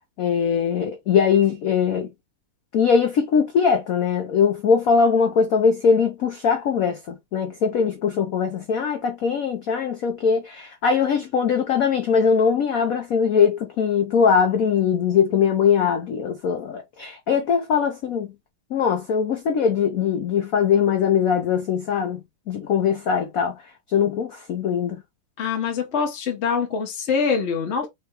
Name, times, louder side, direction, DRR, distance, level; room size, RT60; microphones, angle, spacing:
voice 1, 0.2-2.1 2.7-18.3 18.7-22.2 22.5-23.6 23.9-25.0, left 6 dB, 80° left, 0.7 m, -21 dB
voice 2, 25.4-27.9, left 5 dB, 50° left, 0.9 m, -24 dB
3.5 x 3.3 x 2.9 m
omnidirectional pair, 2.2 m